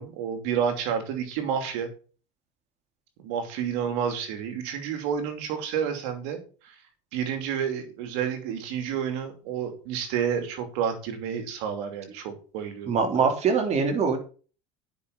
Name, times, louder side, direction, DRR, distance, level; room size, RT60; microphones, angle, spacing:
voice 1, 0.0-1.9 3.2-6.4 6.6-6.7 7.1-13.4, right 8 dB, 75° right, 7 dB, 2.8 m, -30 dB
voice 2, 12.9-14.2, right 5 dB, 45° right, 5 dB, 3.3 m, -23 dB
9.7 x 6.1 x 5.4 m, 0.38 s
supercardioid pair, 100°, 16 cm